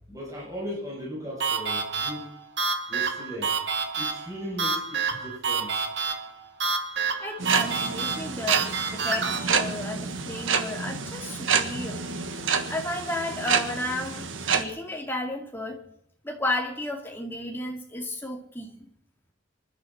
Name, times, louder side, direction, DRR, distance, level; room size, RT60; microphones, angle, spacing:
voice 1, 0.1-2.3 2.9-3.6 3.9-5.8, equal, 20° right, -6 dB, 6.8 m, -37 dB
sound 1, 1.4-9.4, right 5 dB, 60° right, 1.9 m, -29 dB
voice 2, 7.2-12.1 12.7-15.8 16.2-18.9, left 1 dB, 10° left, 2 dB, 2.3 m, -33 dB
sound 2, 7.4-14.6, right 5 dB, 80° right, 1.5 m, -28 dB
25.5 x 12.0 x 4.3 m, 0.68 s
head